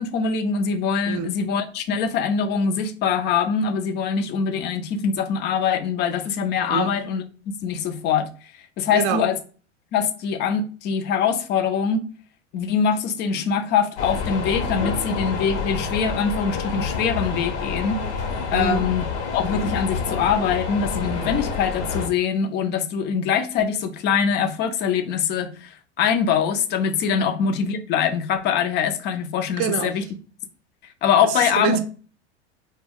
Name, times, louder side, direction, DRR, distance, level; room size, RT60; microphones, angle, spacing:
voice 1, 0.0-7.2 7.6-8.3 8.8-9.4 9.9-12.1 12.5-18.0 18.5-19.0 19.3-30.0 31.0-31.8, left 6 dB, 30° left, 0.4 m, -23 dB
voice 2, 8.9-9.3 18.5-18.9 29.6-29.9 31.2-31.8, right 8 dB, 40° right, 0.5 m, -25 dB
sound 1, 14.0-22.1, left 5 dB, 65° left, 0.8 m, -28 dB
2.2 x 2.1 x 3.6 m
hypercardioid pair, 95°, 35 cm